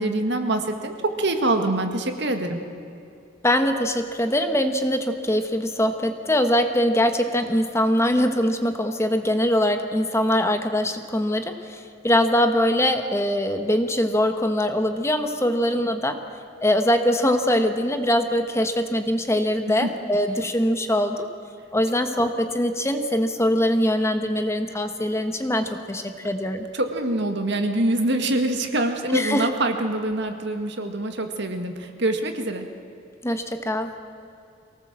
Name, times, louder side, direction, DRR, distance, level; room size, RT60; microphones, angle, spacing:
voice 1, 0.0-2.6 19.7-19.9 26.7-32.7, right 1 dB, 65° right, 6 dB, 2.0 m, -25 dB
voice 2, 3.4-16.2 16.6-21.3 21.7-26.6 29.1-29.5 33.2-33.9, equal, 15° left, 7 dB, 1.2 m, -22 dB
23.5 x 18.5 x 7.5 m, 2.6 s
head